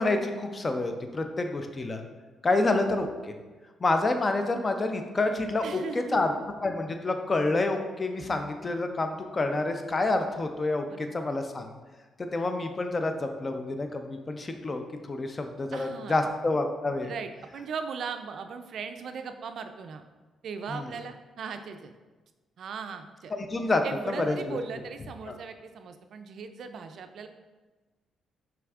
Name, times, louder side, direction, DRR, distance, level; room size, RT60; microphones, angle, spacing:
voice 1, 0.0-2.0 2.4-3.3 3.8-6.3 6.6-11.7 12.2-14.8 15.1-17.1 20.7-20.9 23.3-24.6 25.3-25.4, left 2 dB, 30° left, 5 dB, 0.5 m, -28 dB
voice 2, 5.6-6.5 10.9-11.1 15.7-16.2 17.0-20.0 20.4-21.9 22.6-23.3 23.8-27.3, right 5 dB, 65° right, 7 dB, 0.3 m, -38 dB
5.8 x 3.5 x 2.4 m, 1.3 s
cardioid pair, 100°, 0 cm